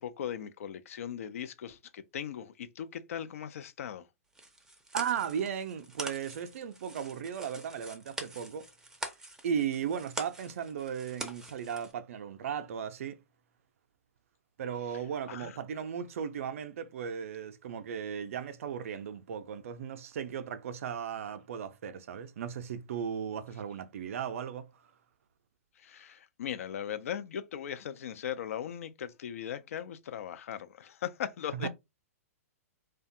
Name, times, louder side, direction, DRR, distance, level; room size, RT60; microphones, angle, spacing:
voice 1, 0.0-4.1 15.3-15.6 25.8-31.7, left 9 dB, 65° left, 0.4 m, -39 dB
sound 1, 4.3-11.9, right 2 dB, 5° right, 0.5 m, -44 dB
voice 2, 4.9-8.7 9.4-13.2 14.6-24.7 31.6-31.7, right 8 dB, 60° right, 0.4 m, -36 dB
2.4 x 2.2 x 2.6 m
hypercardioid pair, 120°, 8 cm